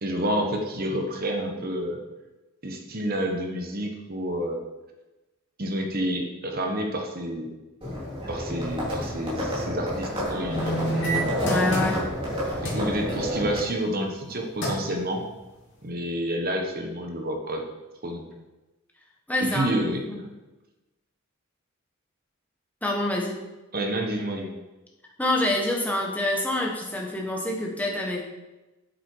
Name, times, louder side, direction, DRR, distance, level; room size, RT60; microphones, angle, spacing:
voice 1, 0.0-2.0 2.6-4.6 5.6-7.5 8.3-11.2 12.6-15.2 15.8-17.6 18.0-18.3 19.4-20.0 23.7-24.5, right 1 dB, 45° right, 3 dB, 1.3 m, -29 dB
Livestock farm animals working animals, 7.8-13.6, equal, 25° right, 3.1 m, -29 dB
sound 1, 10.5-12.3 12.7-12.9 14.2-14.3 14.6-15.0 15.5-15.6, right 2 dB, 55° left, 2.5 m, -28 dB
voice 2, 11.4-12.1 12.4-12.6 19.3-19.7 20.1-20.2 22.8-23.4 25.2-28.2, left 1 dB, 5° left, -1 dB, 1.4 m, -26 dB
8.9 x 7.6 x 4.6 m, 1.1 s
head